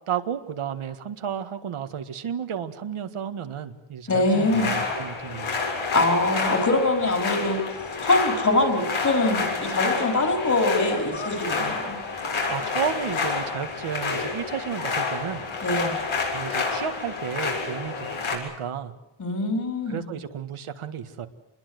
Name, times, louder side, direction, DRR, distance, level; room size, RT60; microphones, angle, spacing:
voice 1, 0.1-5.6 12.5-15.4 16.3-18.9 19.9-21.3, right 8 dB, 85° right, 8 dB, 1.8 m, -32 dB
voice 2, 4.1-4.7 5.9-7.6 8.0-12.0 15.6-15.9 19.2-20.1, left 2 dB, 35° left, 4 dB, 4.7 m, -23 dB
sound 1, 4.2-18.4, left 4 dB, 75° left, 7.4 m, -29 dB
27.0 x 21.5 x 8.1 m, 0.93 s
wide cardioid pair, 175°, 49 cm